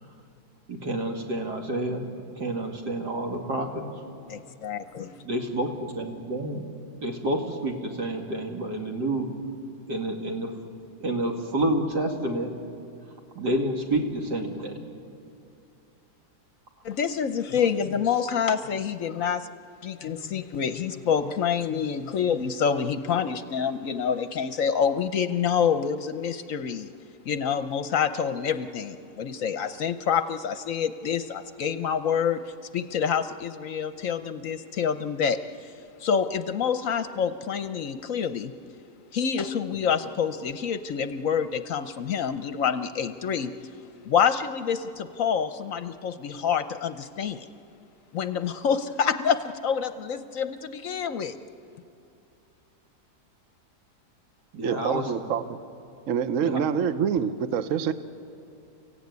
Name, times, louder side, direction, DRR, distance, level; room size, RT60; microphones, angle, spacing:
voice 1, 0.7-2.1 2.4-3.8 5.2-6.6 7.0-9.3 9.9-10.5 11.0-12.5 13.3-14.8 54.5-55.3 56.4-56.7, right 1 dB, 80° right, 2 dB, 2.9 m, -29 dB
voice 2, 4.3-5.1 16.8-19.5 19.8-26.9 27.3-32.4 32.7-35.7 36.0-38.5 39.1-43.5 44.0-47.5 48.1-51.3, left 7 dB, 60° left, 11 dB, 1.0 m, -27 dB
voice 3, 54.6-55.4 56.1-57.9, right 7 dB, 55° right, 12 dB, 1.1 m, -26 dB
30.0 x 15.5 x 9.5 m, 2.6 s
omnidirectional pair, 1.8 m